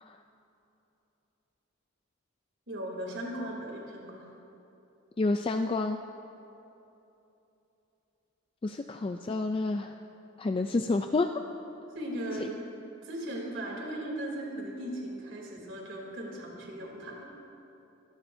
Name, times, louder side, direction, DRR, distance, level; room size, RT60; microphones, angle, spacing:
voice 1, 2.7-4.3 11.9-12.7 13.0-17.3, right 1 dB, 70° right, -2 dB, 3.0 m, -37 dB
voice 2, 5.2-6.0 8.6-10.0 10.4-11.3 12.4-12.5, left 3 dB, 25° left, 6 dB, 0.3 m, -29 dB
24.5 x 13.0 x 2.7 m, 3.0 s
head